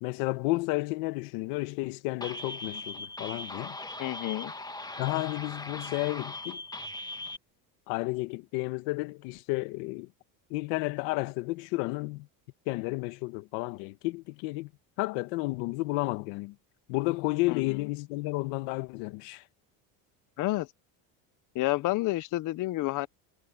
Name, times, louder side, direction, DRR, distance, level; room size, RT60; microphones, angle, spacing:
voice 1, 0.0-3.8 5.0-6.6 7.9-10.1 10.5-12.3 12.7-14.7 15.0-16.5 16.9-19.4, left 22 dB, 85° left, 1.3 m, -32 dB
sound 1, 2.2-7.4, left 2 dB, 10° left, 1.7 m, -39 dB
voice 2, 4.0-4.5 17.5-17.6 20.4-20.7 21.5-23.1, left 18 dB, 45° left, 0.6 m, -29 dB
cardioid pair, 130°, 43 cm